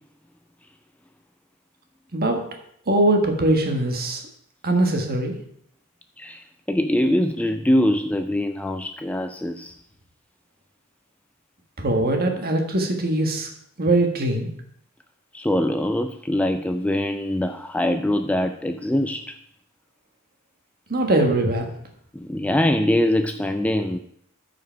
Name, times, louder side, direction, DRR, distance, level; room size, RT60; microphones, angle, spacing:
voice 1, 2.1-2.4 2.9-4.2 4.6-5.3 11.8-13.5 13.8-14.5 20.9-21.7, right 1 dB, 45° right, 3 dB, 1.4 m, -21 dB
voice 2, 6.2-9.7 15.3-19.3 22.1-24.0, left 1 dB, 5° left, 7 dB, 0.3 m, -23 dB
13.5 x 4.9 x 4.5 m, 0.69 s
head